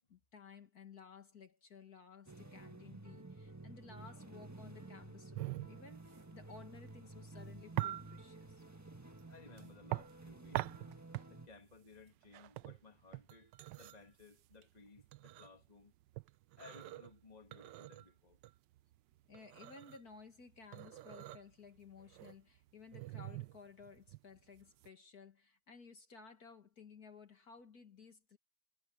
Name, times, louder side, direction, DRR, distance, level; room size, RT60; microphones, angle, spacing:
voice 1, 0.1-8.6 19.3-28.4, left 5 dB, 55° left, 2.3 m, -56 dB
sound 1, 2.3-11.5, right 2 dB, 10° right, 1.3 m, -53 dB
sound 2, 5.3-24.9, right 17 dB, 75° right, 1.2 m, -45 dB
voice 2, 9.3-10.7 11.3-15.9 16.6-18.4, left 4 dB, 20° left, 2.1 m, -59 dB
omnidirectional pair, 2.0 m